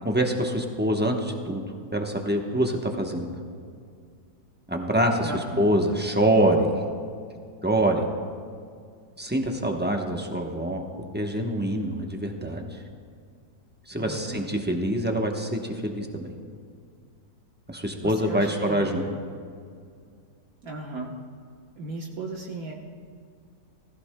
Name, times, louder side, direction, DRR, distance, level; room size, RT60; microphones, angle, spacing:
voice 1, 0.0-3.3 4.7-5.3 5.6-6.8 7.6-8.1 9.2-10.8 11.1-12.8 13.9-16.3 17.7-19.1, right 1 dB, 10° right, 2 dB, 0.6 m, -25 dB
voice 2, 5.2-5.7 14.0-14.5 18.0-19.2 20.6-21.1 21.8-22.7, right 2 dB, 60° right, -1 dB, 1.5 m, -36 dB
19.5 x 15.0 x 2.2 m, 2.2 s
omnidirectional pair, 1.7 m